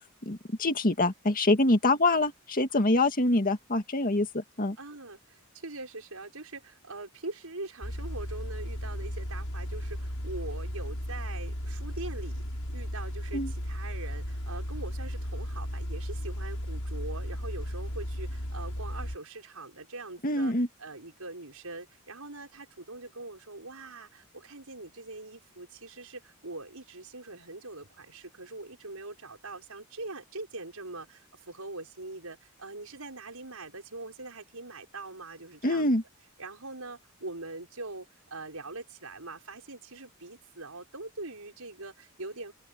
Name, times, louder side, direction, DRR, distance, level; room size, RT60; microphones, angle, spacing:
voice 1, 0.2-4.8 13.3-13.5 20.2-20.7 35.6-36.0, left 2 dB, 40° left, 2.1 m, -25 dB
voice 2, 4.8-12.4 12.7-20.5 20.8-35.9 36.4-42.5, right 2 dB, 80° right, 6.0 m, -42 dB
sound 1, 7.8-19.2, equal, 80° left, 6.5 m, -35 dB
open air
head